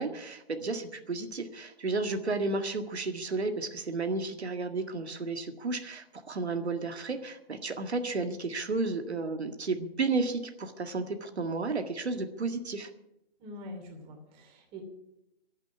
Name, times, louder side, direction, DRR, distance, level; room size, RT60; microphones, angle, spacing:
voice 1, 0.0-12.9, right 3 dB, 90° right, 6 dB, 1.9 m, -32 dB
voice 2, 13.4-14.8, left 1 dB, 15° right, 3 dB, 2.8 m, -44 dB
11.5 x 9.8 x 9.7 m, 0.86 s
hypercardioid pair, 155°, 32 cm